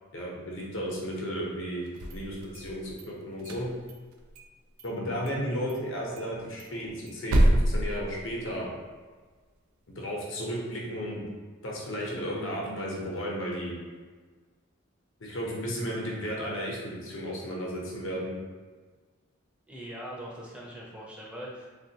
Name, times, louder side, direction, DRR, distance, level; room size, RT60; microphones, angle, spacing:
voice 1, 0.1-1.9 2.1-3.7 4.8-8.7 10.0-11.2 11.6-13.7 15.2-18.3, equal, 65° left, -3 dB, 0.7 m, -34 dB
sound 1, 1.9-3.0 3.4-4.5 4.8-4.9 5.3-5.4 5.7-5.8 6.2-8.7, right 1 dB, 90° right, 0.4 m, -27 dB
voice 2, 19.7-21.7, equal, 5° right, -5 dB, 0.5 m, -41 dB
3.4 x 2.3 x 2.8 m, 1.5 s
head